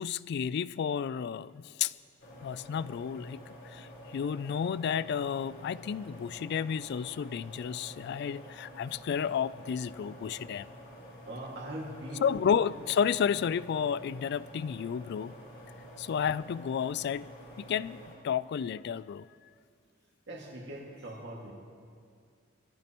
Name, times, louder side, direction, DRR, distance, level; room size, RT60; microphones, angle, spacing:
voice 1, 0.0-1.9 2.4-3.4 3.7-10.7 12.2-15.3 16.0-17.3 17.6-19.2, left 7 dB, 55° left, 18 dB, 0.3 m, -31 dB
sound 1, 2.2-18.1, equal, 80° left, 4.2 m, -49 dB
voice 2, 11.3-12.4 16.0-16.2 20.3-21.5, right 1 dB, 60° right, -2 dB, 2.1 m, -41 dB
22.0 x 15.0 x 3.0 m, 2.3 s
head